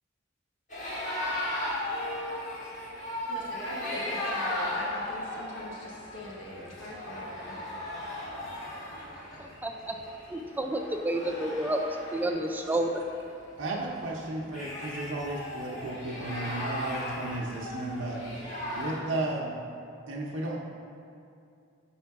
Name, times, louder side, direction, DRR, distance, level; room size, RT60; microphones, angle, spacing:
sound 1, 0.7-19.0, left 1 dB, 40° left, 1.4 m, -37 dB
voice 1, 3.3-7.6, left 1 dB, 85° left, -4 dB, 1.2 m, -41 dB
voice 2, 9.6-10.0 10.3-12.9, right 1 dB, 10° right, 3 dB, 0.4 m, -30 dB
voice 3, 13.6-18.2 18.8-19.6 20.1-20.6, right 2 dB, 85° right, -3 dB, 0.7 m, -34 dB
4.5 x 4.4 x 5.8 m, 2.5 s
head